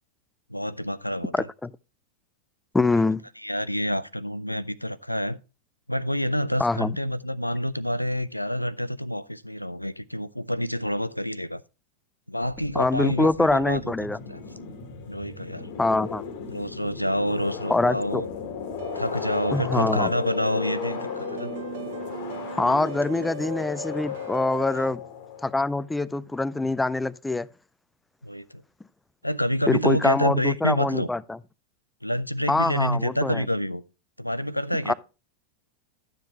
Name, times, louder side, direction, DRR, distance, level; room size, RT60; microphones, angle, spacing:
voice 1, 0.5-1.5 3.4-5.4 5.9-11.6 12.3-13.9 14.3-14.4 15.1-15.7 16.5-18.3 18.9-21.5 24.7-24.9 28.2-28.6 29.2-31.1 32.0-33.8 34.2-34.9, equal, 90° left, 0.4 m, -28 dB
voice 2, 1.3-1.7 2.7-3.2 6.6-6.9 12.8-14.2 15.8-16.2 17.7-18.2 19.5-20.1 22.5-25.0 25.4-27.5 29.7-31.4 32.5-33.4 34.9-35.0, left 2 dB, 10° left, 0.4 m, -24 dB
sound 1, 12.5-25.8, left 6 dB, 50° left, 1.4 m, -36 dB
sound 2, 18.8-24.7, right 4 dB, 55° right, 1.1 m, -39 dB
11.5 x 7.3 x 3.0 m
figure-of-eight pair, 90°, 0 cm